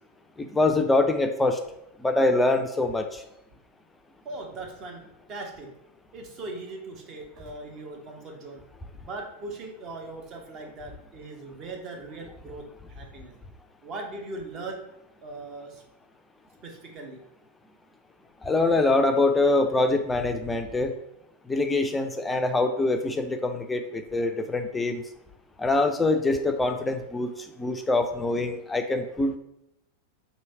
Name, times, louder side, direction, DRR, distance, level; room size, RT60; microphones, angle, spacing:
voice 1, 0.4-1.6 2.0-3.2 18.4-20.9 21.5-25.0 25.6-27.3 27.6-29.3, left 2 dB, 10° left, 6 dB, 0.4 m, -24 dB
voice 2, 4.2-5.0 5.3-5.7 6.1-8.6 8.9-13.3 13.8-14.8 15.2-15.8 16.6-17.2, right 2 dB, 35° right, 1 dB, 0.8 m, -39 dB
3.1 x 2.7 x 4.2 m, 0.81 s
figure-of-eight pair, 90°, 0 cm